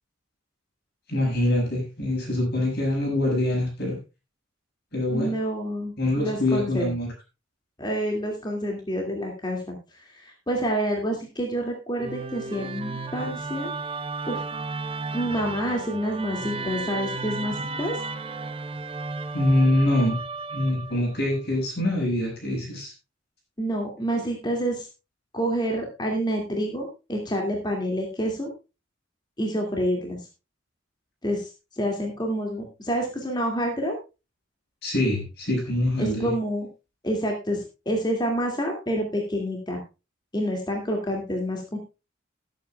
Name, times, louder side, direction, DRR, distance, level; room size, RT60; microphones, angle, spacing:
voice 1, 1.1-4.0 4.9-5.3 6.0-7.1 19.3-20.2 20.5-22.9 34.8-36.3, left 1 dB, 50° left, -1 dB, 5.6 m, -24 dB
voice 2, 5.1-6.9 7.8-13.7 14.3-14.4 15.1-18.0 23.6-24.9 25.3-28.5 29.4-30.3 31.2-34.0 36.0-36.7 37.0-39.8 40.3-41.8, equal, 20° left, 1 dB, 2.2 m, -28 dB
Musical instrument, 12.0-21.2, right 3 dB, 25° right, 0.8 m, -33 dB
19.0 x 8.6 x 2.3 m, 0.28 s
head